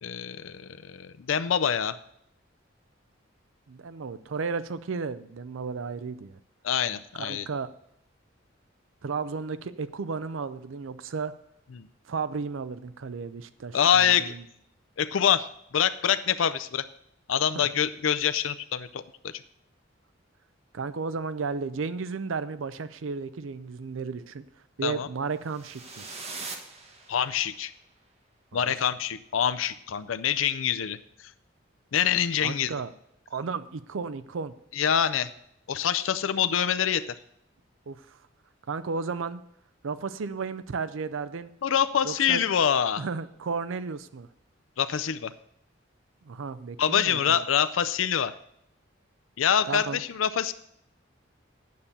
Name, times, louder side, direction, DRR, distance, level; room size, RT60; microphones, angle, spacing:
voice 1, 0.0-2.0 6.6-7.5 11.8-11.9 13.7-14.3 15.0-15.5 15.7-16.8 17.3-19.3 24.8-25.1 27.1-27.7 28.5-31.0 31.9-32.7 34.7-35.3 35.7-37.1 41.6-43.0 44.8-45.3 46.8-48.3 49.4-50.5, left 8 dB, 85° left, 13 dB, 0.5 m, -25 dB
voice 2, 3.7-6.4 7.2-7.7 9.0-11.3 12.1-14.4 17.6-17.7 20.7-24.4 24.8-26.0 28.5-28.9 32.4-32.9 33.3-34.5 37.9-38.2 38.7-39.4 39.8-41.5 42.0-42.4 43.0-44.3 46.3-47.4 49.7-50.0, right 4 dB, 80° right, 14 dB, 0.5 m, -33 dB
sound 1, 25.4-27.6, right 3 dB, 35° right, 1.3 m, -41 dB
9.4 x 7.1 x 6.7 m, 0.72 s
head